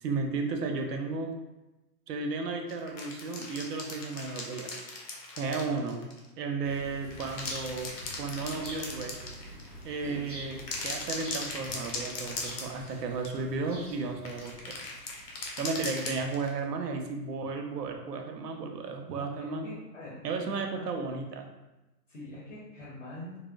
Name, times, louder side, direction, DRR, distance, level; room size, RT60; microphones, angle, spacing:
voice 1, 0.0-1.3 2.1-4.7 5.4-6.0 6.4-7.9 8.2-9.2 9.8-10.6 10.8-14.8 15.6-19.7 20.2-21.5, right 4 dB, 75° right, 4 dB, 0.6 m, -34 dB
sound 1, 2.7-6.3 6.9-9.8 10.5-13.0 13.2-13.4 14.2-16.6, left 3 dB, 85° left, 0.8 m, -39 dB
sound 2, 6.6-16.5, right 1 dB, 35° right, 0.4 m, -47 dB
voice 2, 19.4-20.2 20.5-20.9 22.1-23.4, left 1 dB, 50° left, -6 dB, 0.7 m, -44 dB
2.8 x 2.0 x 2.3 m, 1.0 s
hypercardioid pair, 180°, 49 cm